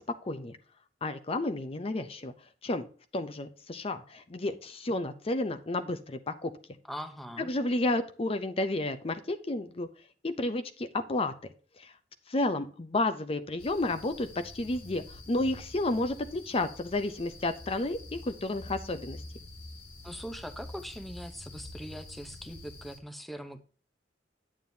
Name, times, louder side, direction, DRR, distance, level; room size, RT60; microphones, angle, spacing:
voice 1, 0.2-0.6 1.0-2.3 2.6-2.9 3.1-6.5 7.4-9.9 10.2-11.3 11.8-11.9 12.3-19.2, left 2 dB, 35° left, 10 dB, 0.6 m, -31 dB
voice 2, 6.8-7.5 20.0-23.6, equal, ahead, 7 dB, 0.7 m, -41 dB
sound 1, 13.6-23.0, left 2 dB, 70° left, 2.0 m, -47 dB
9.4 x 8.8 x 2.7 m, 0.39 s
head